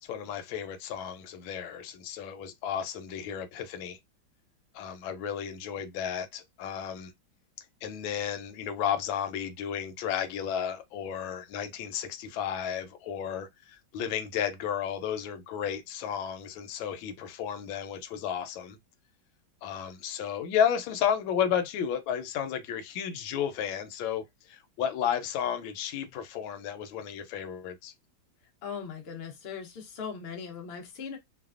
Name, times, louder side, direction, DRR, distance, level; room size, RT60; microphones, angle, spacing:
voice 1, 0.0-4.0 4.7-7.1 7.8-18.8 19.6-27.9, left 8 dB, 90° left, 1.4 m, -33 dB
voice 2, 28.6-31.2, left 6 dB, 50° left, 0.7 m, -39 dB
3.2 x 2.1 x 2.4 m
omnidirectional pair, 2.1 m